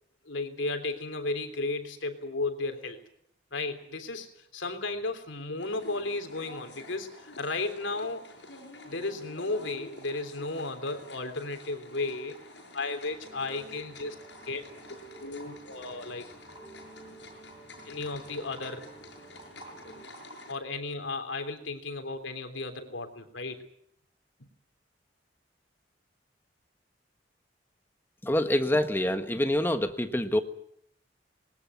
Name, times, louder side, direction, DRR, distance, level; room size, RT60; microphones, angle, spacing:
voice 1, 0.2-3.0 3.5-8.3 8.9-12.4 12.7-14.1 14.4-16.2 17.8-18.9 19.8-19.9 20.5-23.7 24.4-24.5, left 3 dB, 90° left, 7 dB, 3.3 m, -34 dB
sound 1, 5.6-20.5, left 1 dB, 65° left, 7.0 m, -49 dB
sound 2, 13.0-20.1, right 3 dB, 10° right, 5.6 m, -52 dB
voice 2, 28.2-30.4, left 1 dB, 10° left, 7 dB, 1.4 m, -26 dB
20.5 x 19.5 x 9.5 m, 0.72 s
head